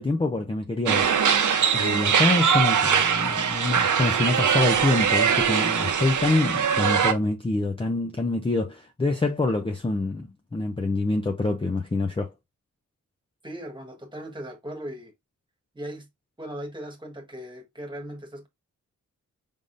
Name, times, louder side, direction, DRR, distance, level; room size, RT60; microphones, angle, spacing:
voice 1, 0.0-1.4 1.7-12.3, left 2 dB, 15° left, 0.5 m, -26 dB
sound 1, 0.9-7.1, right 7 dB, 65° right, 0.8 m, -22 dB
voice 2, 13.4-15.1 15.7-16.1 16.4-18.5, right 1 dB, 15° right, 1.4 m, -38 dB
5.1 x 3.6 x 2.5 m
wide cardioid pair, 130°, 32 cm